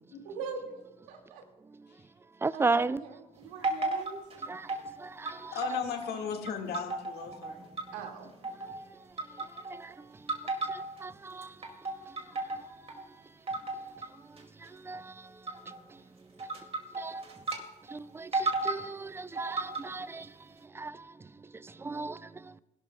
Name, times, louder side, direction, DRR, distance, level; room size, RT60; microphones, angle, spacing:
voice 1, 0.2-0.8 1.1-1.4 2.5-4.2 7.9-8.3, right 5 dB, 85° right, 2.2 m, -41 dB
voice 2, 2.4-3.0 4.5-5.6 9.3-11.7 12.0-12.4 14.6-16.0 17.0-17.2 17.9-22.6, right 3 dB, 15° right, 0.4 m, -37 dB
sound 1, 3.6-4.9 5.3-6.1 6.5-8.1 8.4-8.8 9.2-9.9 10.3-11.1 11.4-13.0 13.5-14.1 14.4-14.7 15.5-15.8 16.4-17.6 17.9-18.0 18.3-18.8 19.4-20.0, right 3 dB, 35° right, 2.4 m, -34 dB
voice 3, 5.5-7.7, left 7 dB, 65° left, 2.0 m, -36 dB
20.0 x 11.5 x 2.3 m
supercardioid pair, 80°, 18 cm